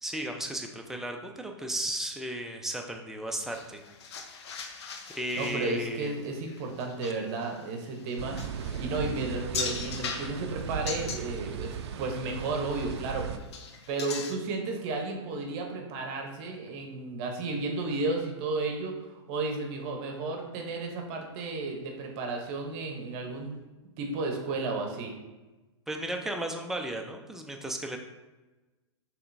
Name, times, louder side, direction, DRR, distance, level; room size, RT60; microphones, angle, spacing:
voice 1, 0.0-3.8 5.1-6.2 25.9-28.0, right 1 dB, 5° right, 2 dB, 0.5 m, -34 dB
sound 1, 3.3-11.7 12.0-13.1 13.4-14.4, left 5 dB, 65° left, 0.7 m, -40 dB
voice 2, 5.3-8.4 8.8-13.3 13.9-23.6 24.0-25.1, right 3 dB, 40° right, 2 dB, 0.9 m, -33 dB
sound 2, 8.2-13.4, right 7 dB, 65° right, 0.4 m, -37 dB
6.5 x 3.1 x 2.6 m, 1.1 s
hypercardioid pair, 115°, 15 cm